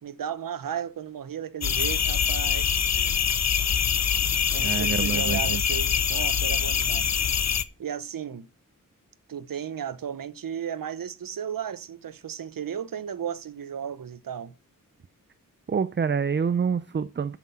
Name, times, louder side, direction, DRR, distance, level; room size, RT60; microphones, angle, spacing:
voice 1, 0.0-3.2 4.5-7.2 7.8-8.5 9.3-14.5, right 8 dB, 75° right, 0.8 m, -35 dB
sound 1, 1.6-7.6, left 7 dB, 50° left, 0.7 m, -24 dB
voice 2, 4.5-5.6 15.7-17.4, right 6 dB, 35° right, 0.5 m, -27 dB
12.0 x 6.0 x 5.5 m
wide cardioid pair, 125°, 34 cm